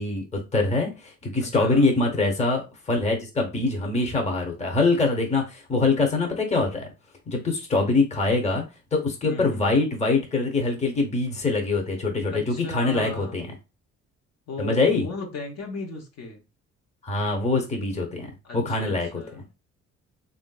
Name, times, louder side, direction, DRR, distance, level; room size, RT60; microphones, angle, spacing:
voice 1, 0.0-6.9 7.3-8.6 8.9-13.5 14.6-15.0 17.0-19.2, left 3 dB, 20° left, 3 dB, 0.8 m, -24 dB
voice 2, 1.4-1.9 9.2-9.6 12.3-13.4 14.5-16.4 18.4-19.4, left 3 dB, 60° left, 2 dB, 0.9 m, -36 dB
3.1 x 2.5 x 2.3 m, 0.28 s
cardioid pair, 90°, 30 cm